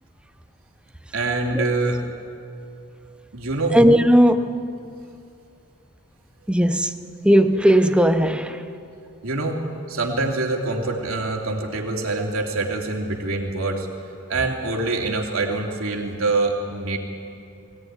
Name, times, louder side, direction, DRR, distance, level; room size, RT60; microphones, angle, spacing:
voice 1, 1.1-2.0 3.3-3.8 9.2-13.9 14.3-17.0, right 3 dB, 75° right, 3.0 m, -25 dB
voice 2, 3.7-4.7 6.5-6.9 7.2-8.6, equal, 5° right, 0.8 m, -17 dB
22.5 x 17.0 x 9.7 m
head